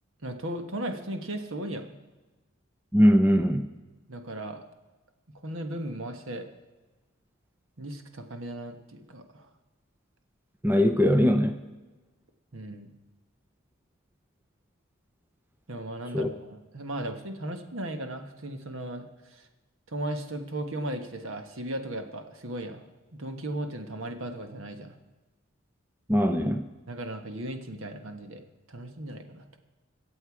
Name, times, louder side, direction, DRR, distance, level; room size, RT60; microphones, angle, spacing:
voice 1, 0.2-1.9 4.1-4.6 5.3-6.5 7.8-9.5 12.5-12.9 15.7-19.5 19.9-22.9 23.2-25.0 26.9-29.6, right 1 dB, 65° right, 6 dB, 1.3 m, -36 dB
voice 2, 2.9-3.7 10.6-11.6 16.1-16.3 26.1-26.7, equal, 10° right, 8 dB, 0.5 m, -21 dB
23.0 x 7.8 x 4.9 m, 1.2 s
head